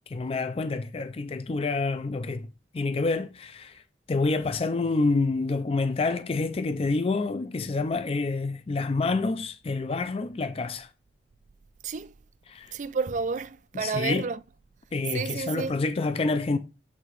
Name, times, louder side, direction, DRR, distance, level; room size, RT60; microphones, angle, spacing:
voice 1, 0.1-2.5 2.7-3.8 4.1-10.9 12.5-12.7 13.7-14.3 14.9-16.6, left 3 dB, 30° left, 0.4 m, -27 dB
voice 2, 12.7-14.4 15.1-15.8, right 5 dB, 45° right, 0.4 m, -31 dB
8.1 x 2.9 x 4.6 m
head